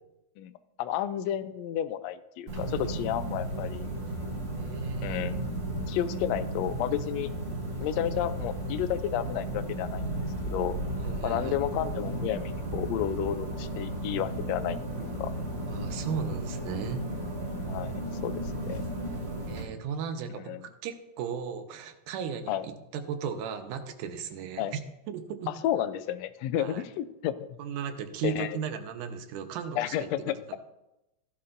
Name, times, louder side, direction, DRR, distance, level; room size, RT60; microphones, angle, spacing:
voice 1, 0.8-3.9 5.0-5.4 5.9-7.3 7.8-10.7 11.2-14.8 15.2-15.3 17.7-18.8 20.5-20.6 22.5-22.6 24.6-24.7 25.6-27.3 28.2-28.6 29.8-30.3, left 11 dB, 80° left, 12 dB, 1.5 m, -31 dB
sound 1, 2.5-19.6, right 1 dB, 20° right, 2.4 m, -34 dB
voice 2, 4.6-5.3 11.0-11.6 15.7-17.0 19.5-24.8 25.1-25.5 26.6-26.8 27.6-30.1 30.5-30.6, right 7 dB, 85° right, 7 dB, 2.4 m, -36 dB
15.0 x 11.5 x 2.6 m, 0.92 s
omnidirectional pair, 3.5 m